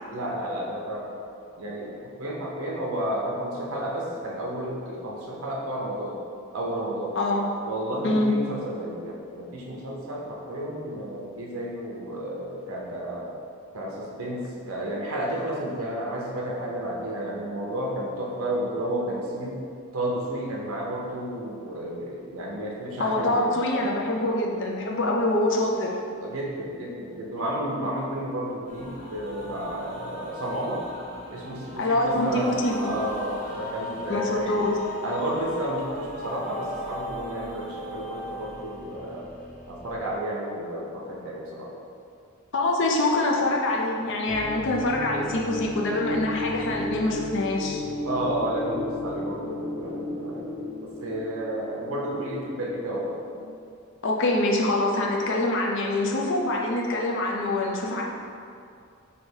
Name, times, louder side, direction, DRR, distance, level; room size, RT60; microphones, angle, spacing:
voice 1, 0.1-1.1 1.6-1.9 2.2-6.2 6.5-7.1 7.6-13.3 13.7-19.6 19.9-23.5 26.2-30.8 31.3-34.6 35.0-39.3 39.7-41.7 48.1-50.6 50.8-53.2, right 1 dB, 75° right, -3 dB, 0.7 m, -31 dB
voice 2, 7.2-7.5 8.0-8.3 23.0-26.0 31.8-32.9 34.1-34.8 42.5-47.8 54.0-58.0, left 2 dB, 60° left, -1 dB, 0.5 m, -25 dB
sound 1, 28.7-40.2, left 1 dB, 40° left, 1.1 m, -38 dB
sound 2, 44.3-53.4, left 2 dB, 80° left, 1.2 m, -34 dB
3.2 x 2.8 x 4.4 m, 2.4 s
head